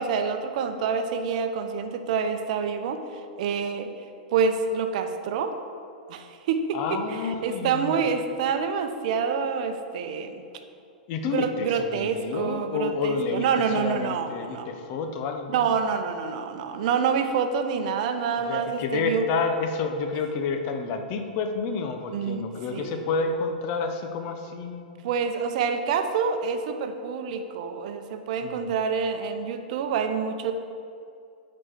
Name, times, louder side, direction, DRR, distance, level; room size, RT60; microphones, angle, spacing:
voice 1, 0.0-3.0 3.4-3.9 4.3-5.5 6.1-10.4 11.2-14.7 15.5-19.2 22.1-23.0 25.0-30.5, right 6 dB, 55° right, 7 dB, 0.7 m, -27 dB
voice 2, 6.7-8.0 11.1-15.7 18.4-25.0 28.4-28.7, left 4 dB, 45° left, 6 dB, 0.8 m, -29 dB
8.8 x 4.3 x 5.0 m, 2.4 s
hypercardioid pair, 110°, 5 cm